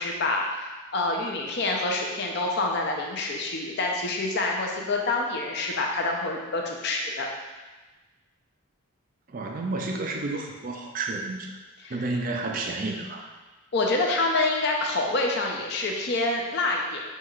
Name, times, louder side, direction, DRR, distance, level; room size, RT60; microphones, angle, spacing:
voice 1, 0.0-7.3 11.8-12.0 13.7-17.0, left 2 dB, 50° left, 1 dB, 0.5 m, -27 dB
voice 2, 9.3-11.5 11.9-13.3, right 2 dB, 40° right, 2 dB, 0.4 m, -31 dB
5.6 x 2.8 x 2.4 m, 1.2 s
head